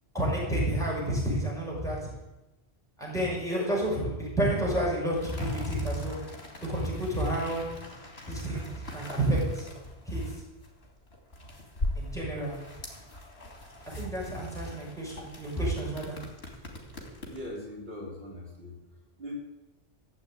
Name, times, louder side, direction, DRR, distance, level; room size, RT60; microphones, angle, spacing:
voice 1, 0.1-2.0 3.0-6.2 6.6-7.7 8.3-9.6 10.1-10.2 12.0-12.6 13.9-16.2, right 1 dB, 5° left, -5 dB, 6.3 m, -30 dB
sound 1, 5.2-17.6, left 1 dB, 70° left, 3.1 m, -42 dB
voice 2, 17.3-18.8 19.2-19.4, left 1 dB, 65° right, -3 dB, 3.5 m, -40 dB
14.5 x 7.9 x 9.1 m, 1.0 s
omnidirectional pair, 1.1 m